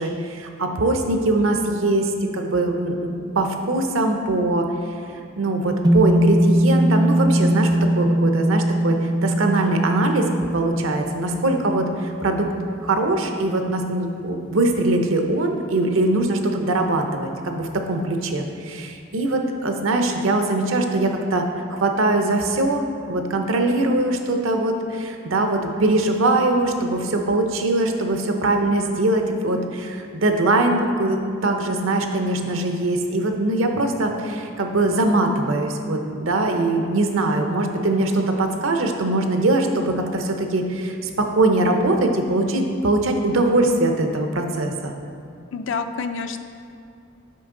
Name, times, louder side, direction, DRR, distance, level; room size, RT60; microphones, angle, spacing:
voice 1, 0.0-4.7 5.4-12.5 12.8-21.5 21.8-44.9, right 2 dB, 75° right, 4 dB, 0.7 m, -22 dB
sound 1, 5.8-14.3, right 1 dB, 20° right, 0.4 m, -21 dB
voice 2, 45.5-46.4, left 5 dB, 65° left, 8 dB, 0.4 m, -27 dB
8.4 x 5.8 x 3.8 m, 2.4 s
head